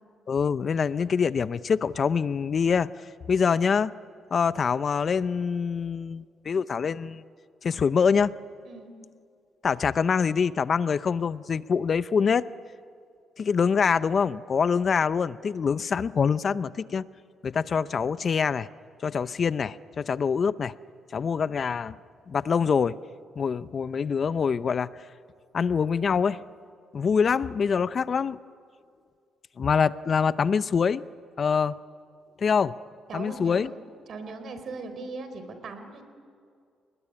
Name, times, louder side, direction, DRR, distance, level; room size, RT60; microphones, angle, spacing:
voice 1, 0.3-2.9 3.3-3.9 4.3-7.2 7.6-8.3 9.6-12.5 13.4-17.1 17.4-18.7 19.0-20.7 21.1-22.0 22.3-23.0 23.4-24.9 25.5-26.4 26.9-28.4 29.6-31.0 31.4-31.7 32.4-32.7 33.1-33.7, left 6 dB, 45° left, 15 dB, 0.6 m, -25 dB
voice 2, 33.1-33.8 34.1-36.0, right 3 dB, 60° right, 9 dB, 4.3 m, -39 dB
29.0 x 20.5 x 9.9 m, 2.2 s
cardioid pair, 90°, 0 cm